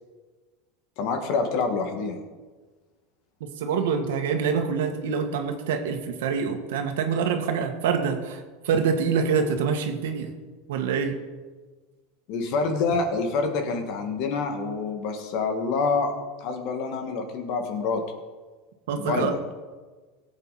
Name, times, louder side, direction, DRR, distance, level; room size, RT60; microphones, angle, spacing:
voice 1, 1.0-2.2 12.3-16.1 16.4-18.0 19.0-19.3, left 4 dB, 55° left, 4 dB, 2.0 m, -27 dB
voice 2, 3.4-10.3 10.7-11.2 18.9-19.3, right 6 dB, 85° right, 5 dB, 1.7 m, -26 dB
17.0 x 8.3 x 4.3 m, 1.3 s
supercardioid pair, 150°, 0 cm